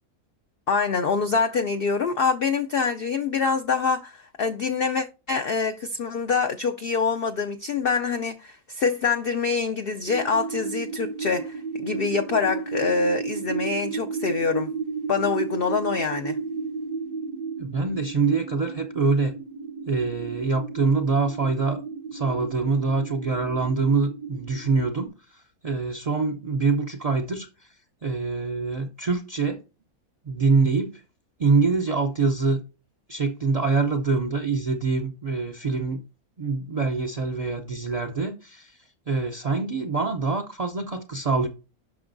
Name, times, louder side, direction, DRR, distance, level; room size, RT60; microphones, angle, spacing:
voice 1, 0.7-14.7 15.1-16.4, left 5 dB, 80° left, 0.5 m, -25 dB
sound 1, 10.1-25.1, right 5 dB, 80° right, 1.5 m, -33 dB
voice 2, 17.6-19.3 19.9-21.8 22.1-27.7 28.0-29.6 30.3-31.0 31.4-32.6 33.1-36.0 36.4-38.8 39.1-41.5, right 4 dB, 65° right, 0.3 m, -25 dB
9.3 x 6.0 x 2.6 m
omnidirectional pair, 1.6 m